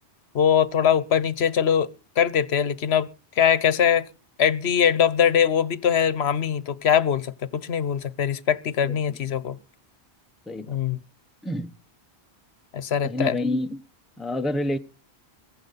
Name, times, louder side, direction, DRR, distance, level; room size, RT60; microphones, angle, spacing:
voice 1, 0.3-1.9 2.2-3.1 3.4-4.1 4.4-9.6 10.7-11.0 12.7-13.4, left 8 dB, 75° left, 1.1 m, -22 dB
voice 2, 8.9-9.2 10.5-10.8 11.4-11.7 13.0-13.8 14.2-14.8, left 1 dB, ahead, 0.7 m, -28 dB
22.0 x 9.6 x 4.1 m
omnidirectional pair, 1.1 m